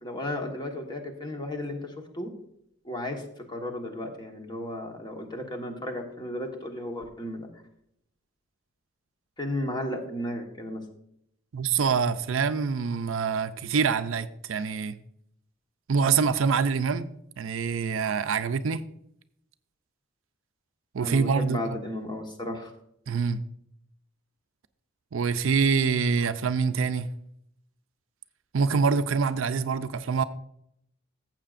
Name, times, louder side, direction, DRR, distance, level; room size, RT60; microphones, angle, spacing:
voice 1, 0.0-2.3 2.8-3.2 3.5-7.5 9.4-10.8 21.0-22.7, left 1 dB, 20° left, 1.3 m, -34 dB
voice 2, 11.5-15.0 15.9-17.1 17.4-18.8 20.9-21.6 23.1-23.4 25.1-27.1 28.5-30.2, right 5 dB, 75° right, 0.5 m, -25 dB
14.5 x 7.5 x 2.5 m
head